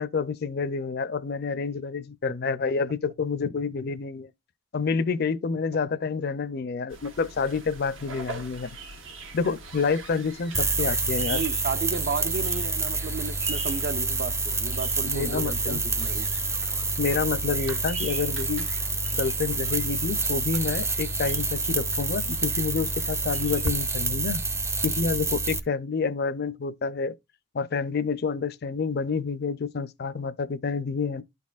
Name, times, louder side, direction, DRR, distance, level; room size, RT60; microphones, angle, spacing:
voice 1, 0.0-4.3 4.7-8.8 9.3-11.5 15.1-15.8 17.0-18.7 19.1-24.4 24.8-27.1 27.5-31.2, left 5 dB, 55° left, 0.5 m, -28 dB
sound 1, 6.9-23.7, right 3 dB, 75° right, 1.4 m, -42 dB
sound 2, 10.5-25.6, right 3 dB, 15° right, 0.6 m, -28 dB
voice 2, 11.3-16.3, right 4 dB, 55° right, 0.7 m, -33 dB
12.0 x 4.2 x 2.4 m
head